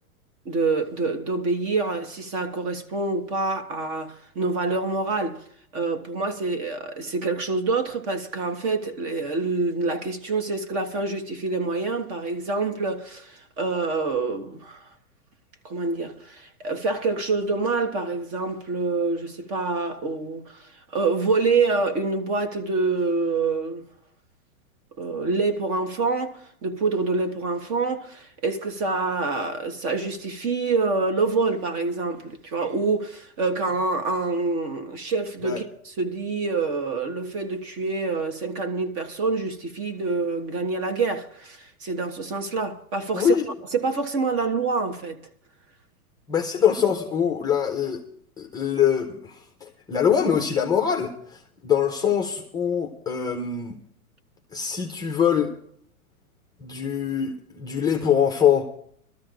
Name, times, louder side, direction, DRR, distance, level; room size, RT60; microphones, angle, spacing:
voice 1, 0.4-5.4 5.7-14.8 15.6-23.9 25.0-43.3 43.7-45.2, right 3 dB, 35° right, 1.5 m, -26 dB
voice 2, 43.1-43.5 46.3-48.0 48.4-53.8 54.5-55.5 56.6-58.7, left 8 dB, 10° left, 0.6 m, -23 dB
23.0 x 13.5 x 2.5 m
hypercardioid pair, 140°, 44 cm